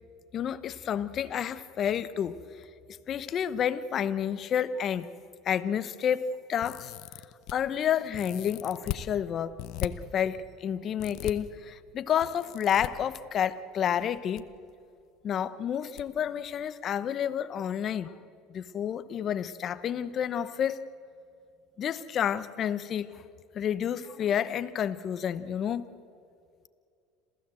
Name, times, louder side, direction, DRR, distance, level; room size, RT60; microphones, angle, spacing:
voice 1, 0.3-2.4 3.1-5.1 5.4-6.9 7.5-9.5 9.8-14.5 15.2-18.1 18.5-20.8 21.8-23.2 23.5-25.9, left 9 dB, 45° left, 14 dB, 1.0 m, -30 dB
sound 1, 6.6-7.5 8.1-9.0 9.6-9.9 11.0-11.3 12.2-12.9 14.0-14.4 14.7-14.8 16.0-16.1 16.4-16.6, left 16 dB, 65° left, 0.9 m, -38 dB
27.0 x 15.5 x 7.7 m, 2.4 s
supercardioid pair, 105°, 0 cm